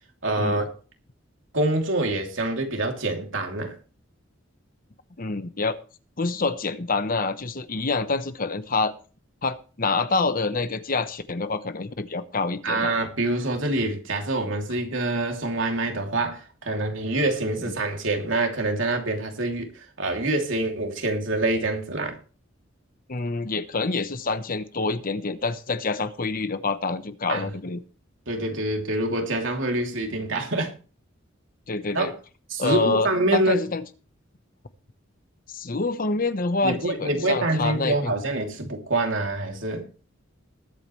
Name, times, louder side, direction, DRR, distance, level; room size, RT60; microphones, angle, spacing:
voice 1, 0.2-0.7 1.5-3.8 12.6-22.2 27.3-27.5 28.3-30.8 31.9-32.1 32.5-33.6 36.6-39.9, right 2 dB, 75° right, 3.0 m, -26 dB
voice 2, 5.2-5.8 6.2-8.9 9.4-12.9 17.6-17.7 23.1-27.8 31.7-32.1 32.6-33.8 35.5-38.1, left 3 dB, 45° left, 1.0 m, -27 dB
20.5 x 8.8 x 3.2 m
head